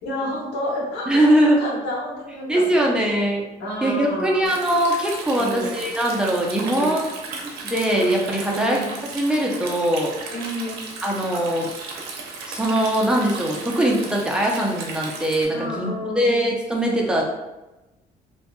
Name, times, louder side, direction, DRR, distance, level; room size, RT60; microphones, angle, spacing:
voice 1, 0.0-3.0 3.6-4.5 5.4-5.8 6.5-7.0 8.5-8.9 10.3-10.8 15.5-16.3 17.1-17.3, equal, 85° left, -4 dB, 0.9 m, -30 dB
voice 2, 1.1-1.6 2.5-3.4 3.8-7.1 7.4-8.8 9.1-10.2 11.0-11.7 12.4-17.3, right 1 dB, 5° right, -2 dB, 0.5 m, -21 dB
Stream, 4.5-15.5, right 4 dB, 70° right, 0.6 m, -35 dB
2.7 x 2.3 x 2.2 m, 1.0 s
cardioid pair, 110°, 17 cm